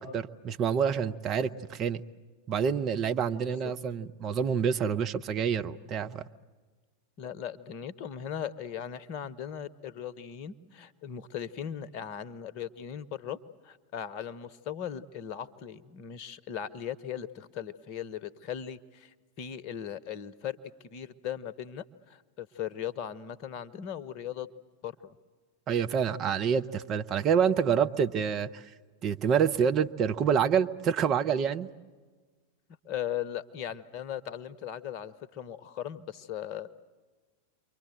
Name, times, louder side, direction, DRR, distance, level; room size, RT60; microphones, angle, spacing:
voice 1, 0.0-2.0 2.5-6.2 25.7-28.6 29.0-31.7, right 7 dB, 30° right, 8 dB, 0.8 m, -27 dB
voice 2, 3.4-3.7 7.2-13.4 13.6-20.6 20.8-24.5 24.8-25.2 32.8-36.7, left 9 dB, 45° left, 16 dB, 0.9 m, -38 dB
29.0 x 23.5 x 7.8 m, 1.4 s
figure-of-eight pair, 90°, 0 cm